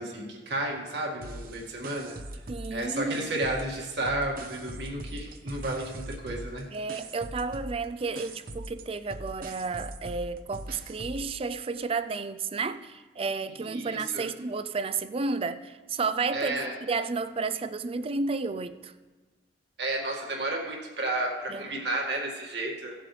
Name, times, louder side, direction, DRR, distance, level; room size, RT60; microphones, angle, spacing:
voice 1, 0.0-2.1 2.7-6.7 13.6-14.3 16.3-16.7 19.8-22.9, right 2 dB, 70° right, 2.0 m, -32 dB
sound 1, 1.2-3.8 4.0-11.3, right 1 dB, 55° right, 0.8 m, -41 dB
voice 2, 2.5-3.5 6.7-18.9 21.5-21.8, right 4 dB, 35° right, 0.4 m, -32 dB
16.5 x 7.6 x 3.3 m
head